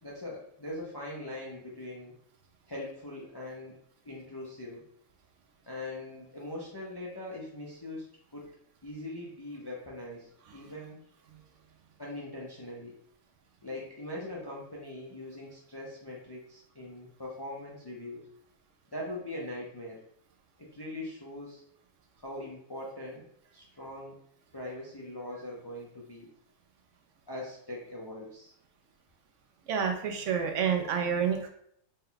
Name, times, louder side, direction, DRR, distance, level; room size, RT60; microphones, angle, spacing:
voice 1, 0.0-2.1 2.7-3.8 4.0-4.9 5.7-8.5 8.8-11.0 12.0-13.0 13.6-18.3 18.9-20.0 20.6-21.6 22.2-23.3 23.5-24.2 24.5-26.3 27.3-28.5, left 1 dB, 35° left, -3 dB, 0.4 m, -41 dB
voice 2, 29.7-31.5, right 7 dB, 70° right, 3 dB, 0.9 m, -29 dB
4.2 x 2.2 x 3.8 m, 0.68 s
omnidirectional pair, 1.4 m